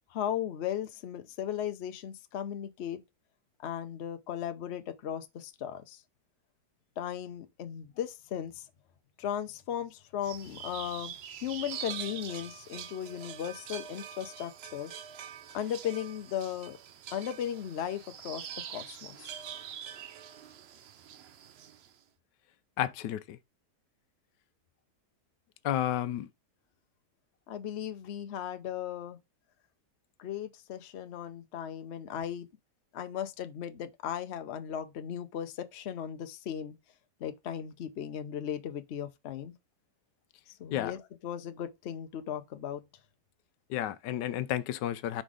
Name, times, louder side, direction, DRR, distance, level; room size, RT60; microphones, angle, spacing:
voice 1, 0.1-3.0 3.6-6.0 7.0-8.7 9.2-11.1 11.4-14.9 15.5-16.8 17.1-19.4 27.5-29.2 30.2-32.5 32.9-36.8 37.2-39.5 40.5-42.8, left 9 dB, 55° left, 0.8 m, -37 dB
sound 1, 10.2-21.9, right 9 dB, 85° right, 0.5 m, -44 dB
voice 2, 22.8-23.4 25.6-26.3 40.7-40.9 43.7-45.2, left 12 dB, 90° left, 1.2 m, -31 dB
5.2 x 3.8 x 4.9 m
omnidirectional pair, 1.8 m